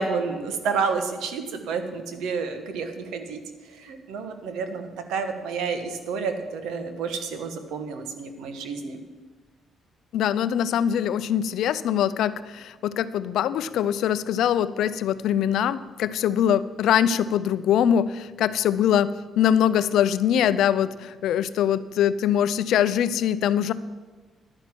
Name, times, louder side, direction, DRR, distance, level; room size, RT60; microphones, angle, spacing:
voice 1, 0.0-3.4 3.8-9.0, right 5 dB, 90° right, 7 dB, 1.2 m, -30 dB
voice 2, 10.1-23.7, left 9 dB, 80° left, 14 dB, 0.5 m, -23 dB
11.5 x 6.0 x 9.0 m, 1.4 s
cardioid pair, 90°, 0 cm